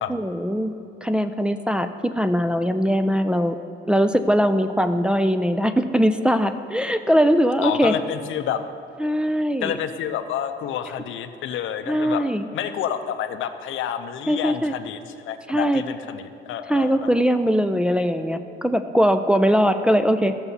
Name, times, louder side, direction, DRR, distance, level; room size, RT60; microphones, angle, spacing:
voice 1, 0.1-0.7 1.0-3.6 3.9-7.9 9.0-9.8 11.9-12.5 14.3-14.7 15.5-15.8 16.7-20.3, equal, 5° right, 7 dB, 0.4 m, -21 dB
voice 2, 7.6-8.6 9.6-12.2 12.5-17.1, left 9 dB, 75° left, 9 dB, 0.6 m, -29 dB
15.0 x 6.9 x 2.8 m, 2.6 s
cardioid pair, 90°, 20 cm